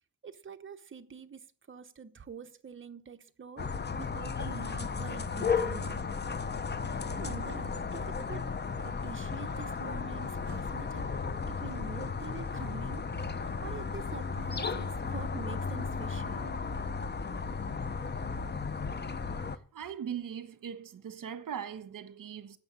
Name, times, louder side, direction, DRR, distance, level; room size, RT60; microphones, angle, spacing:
voice 1, 0.2-6.1 7.1-8.5 8.8-11.1 11.5-13.1 13.3-16.6, right 5 dB, 35° right, 1.1 m, -46 dB
sound 1, 3.6-19.6, left 5 dB, 30° left, 0.8 m, -34 dB
voice 2, 19.7-22.6, right 8 dB, 70° right, 1.4 m, -40 dB
9.6 x 7.2 x 8.3 m
wide cardioid pair, 125°, 34 cm